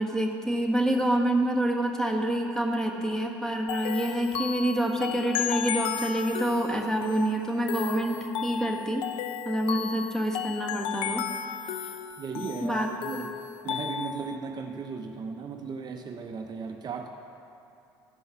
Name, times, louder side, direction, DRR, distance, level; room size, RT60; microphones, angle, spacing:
voice 1, 0.0-9.0 9.4-11.3 12.6-12.9, right 1 dB, 5° left, 1 dB, 1.4 m, -27 dB
sound 1, 3.7-14.4, left 9 dB, 55° left, 0.4 m, -34 dB
voice 2, 12.2-17.1, right 5 dB, 40° right, 4 dB, 0.6 m, -36 dB
13.0 x 5.5 x 5.7 m, 2.8 s
hypercardioid pair, 70°, 11 cm